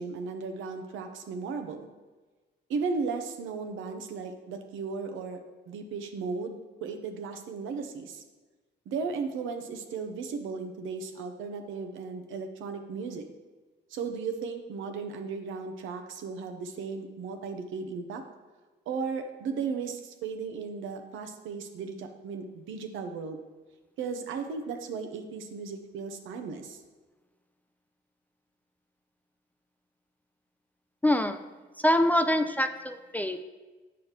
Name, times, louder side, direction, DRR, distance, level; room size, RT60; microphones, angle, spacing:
voice 1, 0.0-1.9 2.7-5.4 5.7-8.2 8.9-13.3 13.9-18.2 18.9-23.4 24.0-26.8, right 5 dB, 85° right, 5 dB, 0.8 m, -35 dB
voice 2, 31.0-31.4 31.8-33.4, left 1 dB, 10° left, 8 dB, 0.4 m, -25 dB
8.2 x 6.3 x 2.9 m, 1.2 s
cardioid pair, 90°, 20 cm